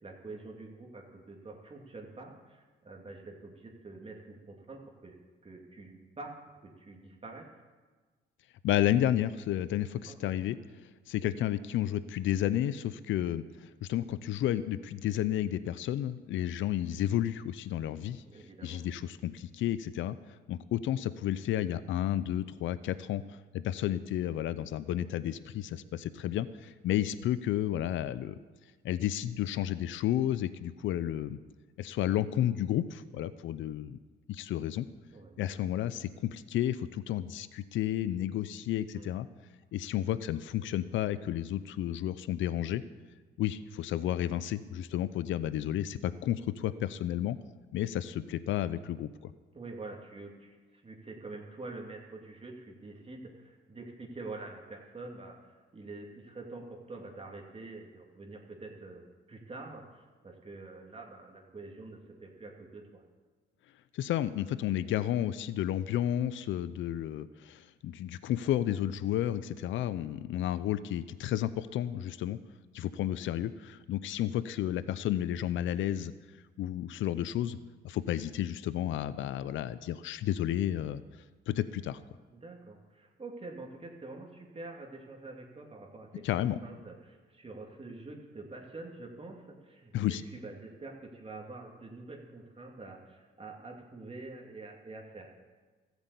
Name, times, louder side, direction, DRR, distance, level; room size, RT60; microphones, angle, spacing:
voice 1, 0.0-5.1 5.4-7.5 10.1-10.3 18.2-18.8 35.1-35.4 38.9-39.1 49.5-63.0 82.3-86.3 86.6-95.3, right 3 dB, 30° right, 0 dB, 2.3 m, -46 dB
voice 2, 8.6-10.6 11.1-18.2 18.6-20.2 20.5-28.4 28.8-31.4 31.8-34.0 34.3-34.9 35.4-39.3 39.7-42.8 43.4-47.4 47.7-49.3 63.9-72.4 72.7-76.1 76.6-77.6 77.8-81.0 81.5-82.0 86.2-86.6 89.9-90.2, left 12 dB, 75° left, 15 dB, 0.6 m, -32 dB
14.0 x 8.1 x 8.2 m, 1.3 s
cardioid pair, 90°, 20 cm